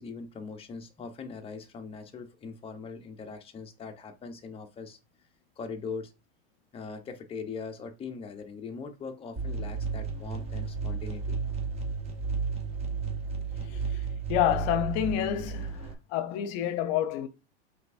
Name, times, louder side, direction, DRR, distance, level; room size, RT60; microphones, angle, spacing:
voice 1, 0.0-5.0 5.6-6.1 6.7-11.4, left 5 dB, 15° left, 0.7 m, -41 dB
sound 1, 9.4-15.9, right 5 dB, 20° right, 0.9 m, -33 dB
voice 2, 14.3-15.8 16.1-17.3, left 11 dB, 45° left, 0.8 m, -28 dB
5.2 x 3.5 x 2.5 m
hypercardioid pair, 125°, 33 cm